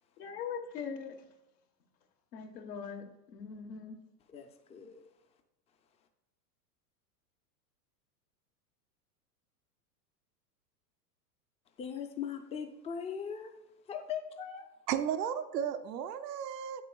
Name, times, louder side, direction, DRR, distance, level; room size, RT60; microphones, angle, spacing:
voice 1, 0.2-1.2 2.3-4.0, left 6 dB, 80° left, 1.3 m, -41 dB
voice 2, 4.3-5.0 11.8-13.5 13.9-14.7, left 7 dB, 15° left, 0.4 m, -40 dB
voice 3, 14.9-16.8, right 9 dB, 90° right, 0.7 m, -34 dB
8.2 x 7.1 x 2.3 m
hypercardioid pair, 110°, 48 cm